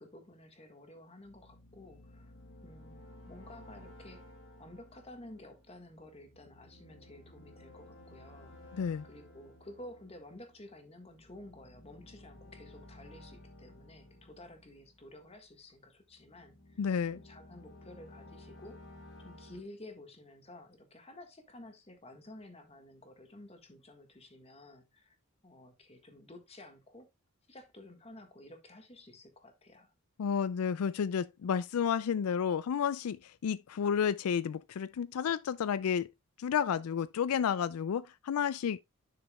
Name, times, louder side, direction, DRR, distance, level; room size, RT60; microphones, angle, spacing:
voice 1, 0.0-3.0 3.3-4.2 4.6-16.8 17.1-25.1 25.4-27.1 27.5-29.9, left 1 dB, 30° left, 1.6 m, -52 dB
sound 1, 1.3-15.5 16.1-19.6, left 1 dB, 55° left, 2.3 m, -55 dB
voice 2, 8.7-9.0 16.8-17.2 30.2-36.1 36.4-38.8, left 7 dB, 85° left, 0.4 m, -31 dB
10.0 x 6.3 x 2.3 m
head